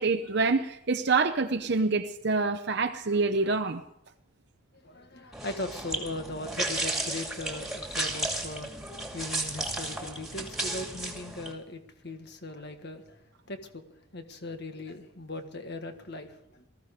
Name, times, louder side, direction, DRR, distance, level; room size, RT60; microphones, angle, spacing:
voice 1, 0.0-3.8, right 4 dB, 50° right, 0.8 m, -26 dB
voice 2, 4.8-8.9 9.1-13.2 13.5-13.8 14.1-16.7, left 2 dB, 50° left, 1.7 m, -39 dB
sound 1, 5.3-11.5, right 2 dB, ahead, 2.4 m, -34 dB
19.5 x 14.5 x 5.1 m
head